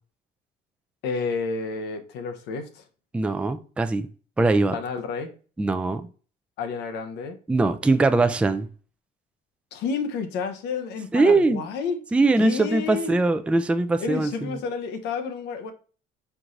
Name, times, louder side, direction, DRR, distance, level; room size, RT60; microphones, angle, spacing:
voice 1, 1.0-2.8 4.7-5.3 6.6-7.4 9.7-12.0 12.4-13.1 14.0-15.7, left 5 dB, 80° left, 0.8 m, -30 dB
voice 2, 3.1-4.1 4.4-4.8 5.6-6.1 7.5-8.7 11.1-11.6 12.1-14.5, right 3 dB, 5° right, 0.3 m, -21 dB
4.6 x 3.9 x 2.5 m
cardioid pair, 110°, 17 cm